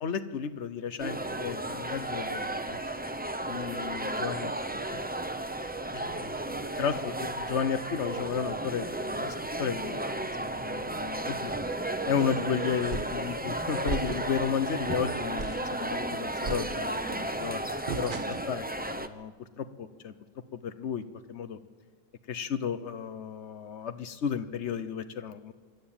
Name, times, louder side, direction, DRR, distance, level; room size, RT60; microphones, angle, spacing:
voice 1, 0.0-2.8 3.4-5.0 5.9-11.5 12.1-20.1 20.5-21.0 21.3-21.6 22.3-25.5, left 7 dB, 90° left, 12 dB, 1.3 m, -33 dB
sound 1, 1.0-19.1, right 1 dB, 10° right, 0.5 m, -34 dB
sound 2, 12.9-13.3 13.9-14.5 14.9-15.0 15.4-15.7 16.4-17.1 17.9-18.6, right 4 dB, 50° right, 1.0 m, -36 dB
25.5 x 12.0 x 8.8 m, 1.5 s
omnidirectional pair, 1.1 m